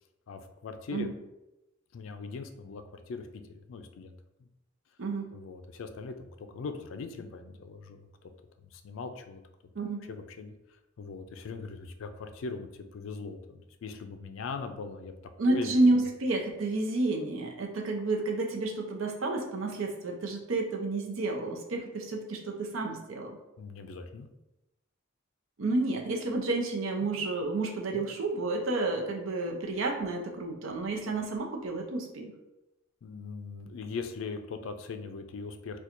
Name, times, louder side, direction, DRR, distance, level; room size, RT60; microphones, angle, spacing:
voice 1, 0.3-1.1 1.9-4.1 5.3-8.3 8.7-9.4 10.1-10.5 11.0-15.1 15.5-15.7 23.6-24.3 27.0-27.1 27.9-28.0 33.0-35.8, left 4 dB, 80° left, 7 dB, 0.4 m, -40 dB
voice 2, 5.0-5.3 9.7-10.0 15.4-23.4 25.6-32.3, right 2 dB, 90° right, 2 dB, 0.6 m, -30 dB
4.3 x 2.2 x 2.5 m, 0.95 s
head